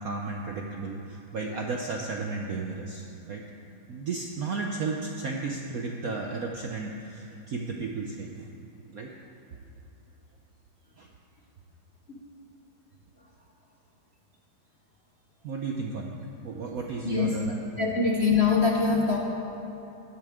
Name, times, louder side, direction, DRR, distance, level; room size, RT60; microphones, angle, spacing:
voice 1, 0.0-3.4 3.9-8.3 8.9-9.1 11.0-11.1 15.4-16.1 16.4-17.5, right 4 dB, 65° right, 1 dB, 0.9 m, -33 dB
voice 2, 17.0-17.4 17.8-19.2, left 4 dB, 45° left, -1 dB, 0.9 m, -23 dB
16.0 x 12.0 x 3.6 m, 2.9 s
omnidirectional pair, 2.3 m